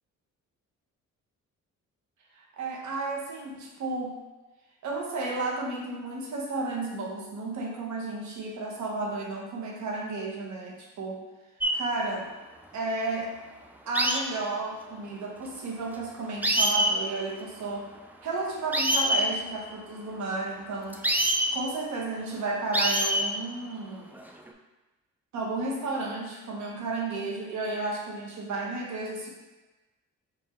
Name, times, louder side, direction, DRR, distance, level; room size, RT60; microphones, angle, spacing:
voice 1, 2.4-4.2 4.8-11.2 11.7-12.3 12.7-13.3 13.9-17.9 18.2-21.0 21.5-24.1 25.3-29.3, right 3 dB, 70° right, -2 dB, 1.1 m, -33 dB
sound 1, 11.6-11.8 13.9-14.2 15.9-16.0 16.4-16.9 18.7-19.2 20.9-21.5 22.7-23.3 24.1-24.5, right 1 dB, 5° right, 0.3 m, -24 dB
3.9 x 2.6 x 4.2 m, 1.1 s
cardioid pair, 90°, 30 cm